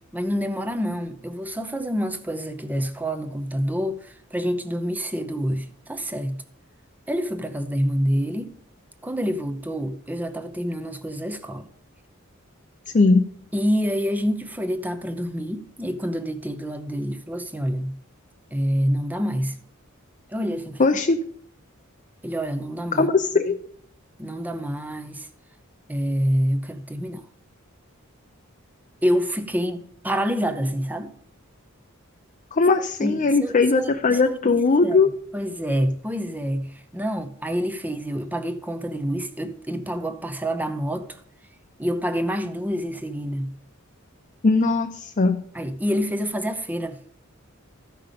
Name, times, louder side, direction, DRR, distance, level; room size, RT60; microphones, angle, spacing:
voice 1, 0.1-6.4 7.1-8.6 9.0-11.7 13.5-18.0 18.5-19.6 20.3-21.0 22.2-23.1 24.2-25.3 25.9-27.2 29.0-31.1 33.0-41.1 41.8-43.5 45.5-47.0, equal, 10° right, 0.7 m, -27 dB
voice 2, 20.8-21.2 23.0-23.6 32.5-35.1 44.4-45.4, left 3 dB, 35° left, 0.5 m, -19 dB
13.5 x 5.8 x 5.1 m
head